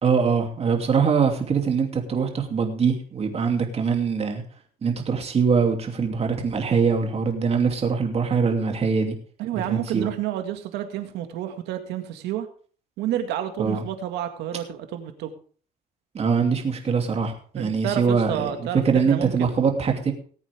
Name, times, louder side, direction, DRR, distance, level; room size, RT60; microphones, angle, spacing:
voice 1, 0.0-4.4 4.8-9.1 9.5-10.1 13.6-13.8 16.1-18.5 18.8-20.1, right 5 dB, 40° right, 4 dB, 2.8 m, -23 dB
voice 2, 9.4-12.5 13.0-15.3 17.5-19.6, right 11 dB, 85° right, 7 dB, 2.0 m, -30 dB
19.5 x 8.5 x 3.6 m, 0.43 s
cardioid pair, 110°, 17 cm